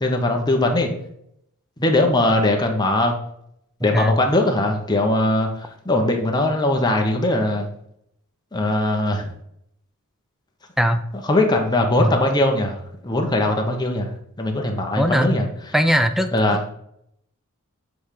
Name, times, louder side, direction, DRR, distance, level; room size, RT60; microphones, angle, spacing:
voice 1, 0.0-0.9 1.8-3.1 3.8-7.7 8.5-9.3 11.3-14.1 14.4-15.5 16.3-16.6, left 1 dB, 20° left, 2 dB, 0.9 m, -20 dB
voice 2, 3.8-4.2 10.8-11.0 12.0-12.1 15.0-15.3 15.7-16.3, equal, ahead, 9 dB, 0.4 m, -19 dB
8.1 x 3.4 x 4.8 m, 0.74 s
head